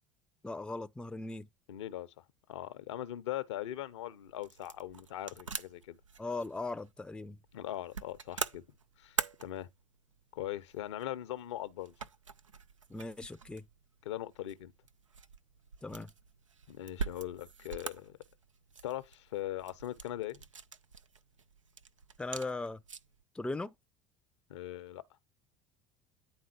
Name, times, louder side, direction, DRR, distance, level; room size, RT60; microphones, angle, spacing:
voice 1, 0.4-1.5 6.2-7.4 12.9-13.7 15.8-16.1 22.2-22.8 23.3-23.7, left 2 dB, 5° left, 0.5 m, -38 dB
voice 2, 1.7-2.1 2.5-6.0 7.5-8.6 9.0-9.7 10.3-11.9 14.0-14.7 16.7-18.2 18.8-20.4 24.5-25.0, left 13 dB, 70° left, 0.7 m, -40 dB
sound 1, 3.7-23.2, right 5 dB, 85° right, 0.5 m, -45 dB
9.7 x 3.8 x 4.4 m
figure-of-eight pair, 65°, 16 cm